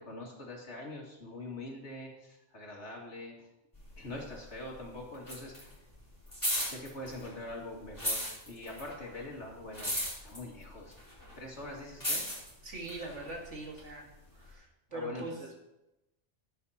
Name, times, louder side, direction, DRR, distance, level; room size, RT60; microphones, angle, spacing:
voice 1, 0.0-3.5 4.0-5.8 6.6-9.9 10.2-11.0 11.4-12.3 14.9-15.5, left 1 dB, 70° left, -1 dB, 2.6 m, -44 dB
sound 1, 3.7-4.8 5.0-7.5 7.9-13.8 14.5-14.6, equal, 15° left, 4.6 m, -36 dB
voice 2, 12.6-14.1 14.4-15.4, right 2 dB, 75° right, 0 dB, 2.4 m, -41 dB
16.0 x 8.6 x 2.9 m, 0.93 s
omnidirectional pair, 1.2 m